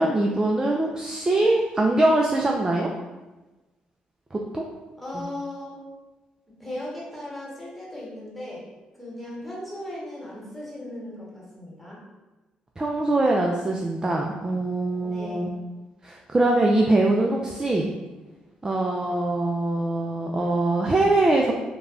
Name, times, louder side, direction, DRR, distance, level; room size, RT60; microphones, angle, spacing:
voice 1, 0.0-2.9 4.3-4.6 5.1-5.3 12.8-15.5 16.0-17.9 18.6-21.5, right 2 dB, 20° right, 0 dB, 0.3 m, -23 dB
voice 2, 5.0-5.8 6.5-8.6 9.0-12.0 15.0-15.5, left 1 dB, ahead, -6 dB, 1.2 m, -37 dB
3.2 x 2.2 x 2.5 m, 1.2 s
supercardioid pair, 60°, 3 cm